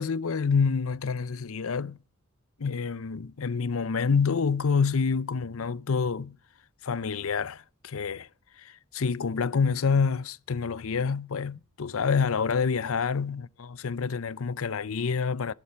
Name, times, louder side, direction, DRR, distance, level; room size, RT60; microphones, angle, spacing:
voice 1, 0.0-2.0 2.6-6.4 6.8-8.3 8.6-15.5, left 5 dB, 70° left, 0.6 m, -27 dB
16.5 x 10.0 x 6.9 m
head